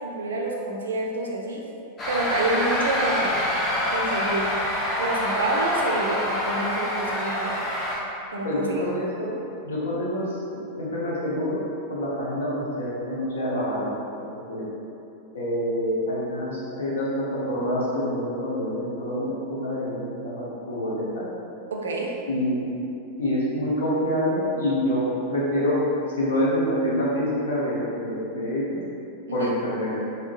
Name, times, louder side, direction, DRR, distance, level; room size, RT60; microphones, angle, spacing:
voice 1, 0.0-1.6 2.1-3.5 3.9-4.6 5.0-7.6 8.3-8.9 21.7-22.2 29.3-29.5, right 2 dB, 70° right, -1 dB, 0.4 m, -28 dB
sound 1, 2.0-8.0, left 1 dB, 25° left, 0.7 m, -26 dB
voice 2, 8.4-9.3 9.6-11.6 11.9-13.9 14.2-14.6 15.3-21.3 22.3-22.7 23.2-25.8 26.2-28.8 29.3-29.9, equal, 65° left, -7 dB, 0.9 m, -26 dB
3.6 x 2.7 x 2.3 m, 2.8 s
figure-of-eight pair, 90°, 0 cm